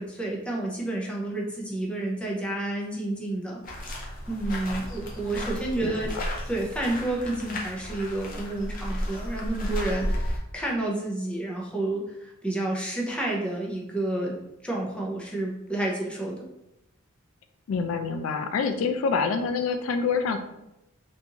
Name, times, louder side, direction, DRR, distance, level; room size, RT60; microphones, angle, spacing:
voice 1, 0.0-6.1 6.5-14.3 14.6-16.5, right 2 dB, 5° left, -3 dB, 0.6 m, -30 dB
sound 1, 3.6-10.4, equal, 45° left, 0.7 m, -33 dB
voice 2, 17.7-20.4, left 5 dB, 75° left, 8 dB, 0.3 m, -26 dB
3.7 x 2.5 x 2.8 m, 0.88 s
head